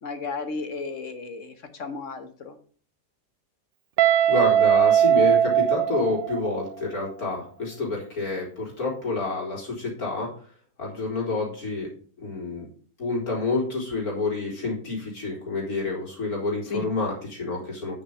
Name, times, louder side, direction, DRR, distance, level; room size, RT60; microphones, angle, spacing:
voice 1, 0.0-2.6 16.6-16.9, left 4 dB, 55° left, 8 dB, 1.4 m, -34 dB
Guitar, 4.0-6.8, right 10 dB, 60° right, 0.6 m, -20 dB
voice 2, 4.3-10.3 10.8-11.9 12.2-12.7 13.0-18.0, left 3 dB, 80° left, -3 dB, 4.4 m, -28 dB
9.5 x 6.3 x 5.4 m, 0.44 s
omnidirectional pair, 1.6 m